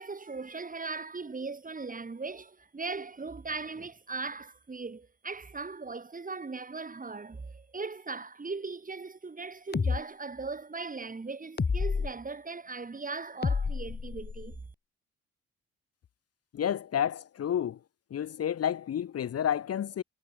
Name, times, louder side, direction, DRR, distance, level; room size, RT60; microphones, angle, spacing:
voice 1, 0.0-14.6, right 4 dB, 25° right, 3.9 m, -39 dB
sound 1, 9.7-10.0 11.6-12.1 13.4-14.6, left 5 dB, 35° left, 3.2 m, -29 dB
voice 2, 16.5-17.8 18.1-20.0, left 9 dB, 55° left, 1.2 m, -30 dB
supercardioid pair, 70°, 29 cm